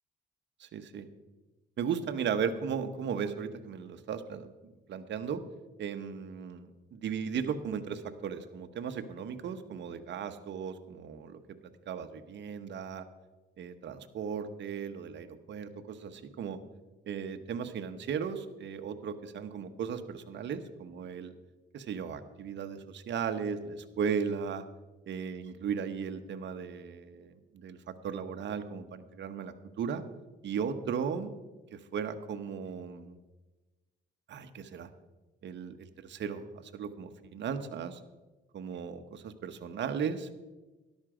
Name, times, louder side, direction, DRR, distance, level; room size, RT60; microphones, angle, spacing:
voice 1, 0.6-1.1 1.8-4.5 4.9-5.4 5.8-11.4 11.9-13.1 13.6-16.6 17.1-21.3 21.7-24.6 25.1-30.0 30.4-31.3 31.7-33.2 34.3-34.9 35.4-38.0 38.5-40.3, right 7 dB, 65° right, 8 dB, 1.2 m, -36 dB
13.0 x 11.5 x 5.0 m, 1.1 s
cardioid pair, 90°, 20 cm